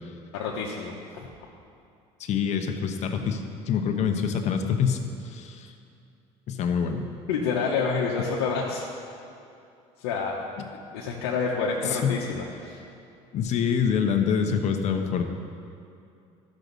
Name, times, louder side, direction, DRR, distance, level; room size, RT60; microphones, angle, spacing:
voice 1, 0.3-1.3 7.3-8.8 10.0-10.4 10.9-12.8, left 5 dB, 90° left, -4 dB, 1.0 m, -28 dB
voice 2, 2.2-5.7 6.5-7.1 10.6-10.7 11.9-12.1 13.3-15.3, left 7 dB, 55° left, 5 dB, 1.0 m, -26 dB
13.0 x 6.4 x 4.0 m, 2.6 s
supercardioid pair, 90°, 14 cm